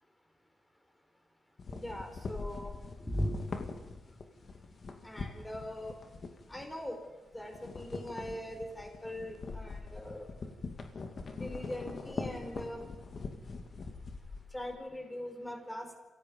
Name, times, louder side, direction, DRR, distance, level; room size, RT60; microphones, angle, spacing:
sound 1, 1.6-7.0 7.3-14.8, left 4 dB, 50° left, 2.4 m, -43 dB
voice 1, 1.7-2.8 3.1-3.4 5.0-5.9 6.5-7.0 7.3-10.3 11.3-12.8 14.5-15.9, equal, 10° left, 5 dB, 4.7 m, -40 dB
29.0 x 16.5 x 5.5 m, 1.2 s
cardioid pair, 90°, 0 cm